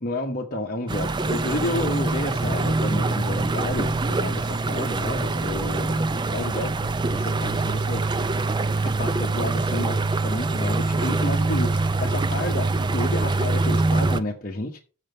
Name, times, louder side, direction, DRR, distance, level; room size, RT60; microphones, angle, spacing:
voice 1, 0.0-8.4 8.8-14.8, left 1 dB, 40° left, 1.0 m, -30 dB
sound 1, 0.9-14.2, right 3 dB, 20° right, 0.4 m, -24 dB
7.2 x 6.8 x 5.1 m
head